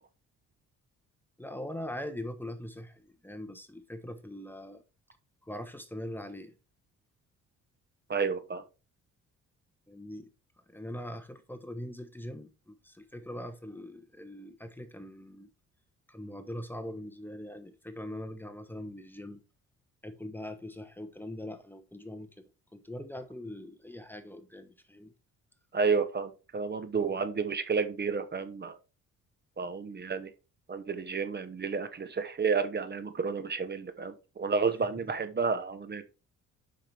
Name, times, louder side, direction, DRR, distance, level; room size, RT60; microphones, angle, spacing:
voice 1, 1.4-4.8 5.4-6.5 9.9-10.3 10.7-15.5 16.1-19.4 20.0-25.1 27.0-27.1 29.8-30.0, left 1 dB, 5° left, 1.1 m, -42 dB
voice 2, 8.1-8.6 25.7-28.8 29.6-30.3 30.7-36.0, right 5 dB, 35° right, 1.0 m, -31 dB
7.5 x 5.8 x 3.5 m
cardioid pair, 90°, 30 cm